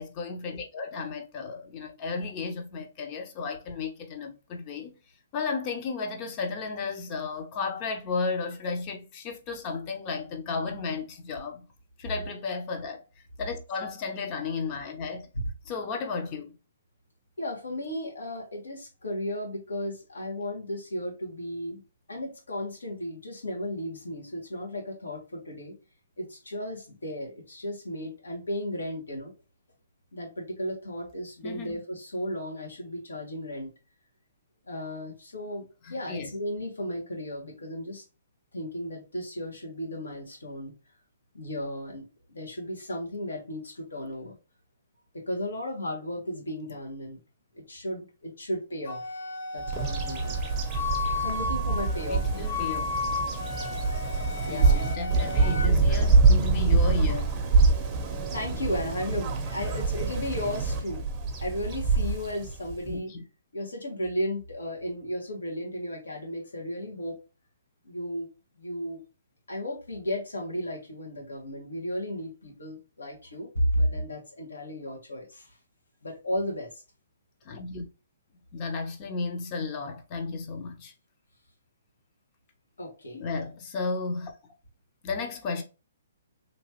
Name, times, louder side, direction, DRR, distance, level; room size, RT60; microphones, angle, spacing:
voice 1, 0.0-4.9 5.3-11.7 12.0-13.0 13.4-15.3 15.7-16.6 31.4-31.8 35.8-36.3 52.1-52.9 54.5-57.3 62.9-63.2 77.4-77.9 78.5-80.9 83.1-84.3 85.0-85.6, left 4 dB, 30° left, 0.6 m, -33 dB
voice 2, 17.4-21.8 22.1-25.7 26.2-29.3 30.1-33.7 34.7-38.0 38.5-40.7 41.3-44.4 45.1-47.2 47.5-49.0 49.5-50.4 51.2-52.4 54.4-54.9 58.3-61.1 61.4-63.1 63.5-67.2 67.8-68.3 68.6-69.0 69.5-75.5 76.0-76.8 82.8-83.2, equal, 90° left, 1.3 m, -34 dB
Wind instrument woodwind instrument, 48.9-55.7, left 4 dB, 70° left, 0.8 m, -34 dB
Bird vocalization bird call bird song, 49.7-62.9, right 4 dB, 25° right, 0.6 m, -25 dB
2.9 x 2.4 x 2.8 m
hypercardioid pair, 140°, 0 cm